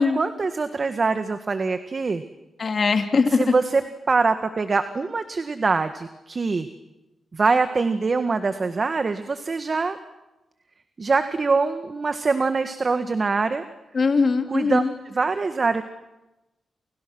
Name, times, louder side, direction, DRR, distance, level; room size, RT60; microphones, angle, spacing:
voice 1, 0.0-2.2 3.4-3.8 4.1-6.7 7.3-10.0 11.0-13.6 14.5-14.8 15.1-15.8, right 4 dB, 45° right, 9 dB, 1.6 m, -23 dB
voice 2, 2.6-3.5 13.9-14.9, left 4 dB, 55° left, 6 dB, 3.2 m, -21 dB
29.5 x 27.0 x 6.3 m, 1.0 s
cardioid pair, 55°, 0 cm